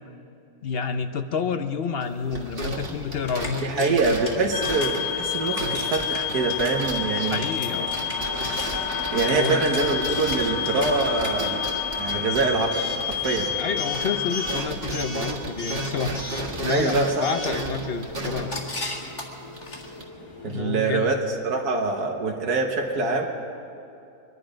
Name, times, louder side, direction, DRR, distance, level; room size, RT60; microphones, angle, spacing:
voice 1, 0.6-4.2 7.3-7.9 9.3-9.8 13.6-18.5 20.4-21.1, left 6 dB, 55° left, 9 dB, 0.7 m, -29 dB
sound 1, 2.0-13.6 13.9-20.0, right 2 dB, 40° right, 1.8 m, -35 dB
Coin (dropping) / Alarm, 3.1-20.6, left 1 dB, 30° left, 2.2 m, -37 dB
voice 2, 3.6-7.4 9.1-11.6 11.9-13.5 16.7-17.5 20.4-21.2 21.4-23.3, right 3 dB, 90° right, 0 dB, 1.8 m, -24 dB
sound 2, 4.5-14.6, left 7 dB, 90° left, 1.5 m, -29 dB
24.0 x 11.0 x 5.1 m, 2.7 s
omnidirectional pair, 1.6 m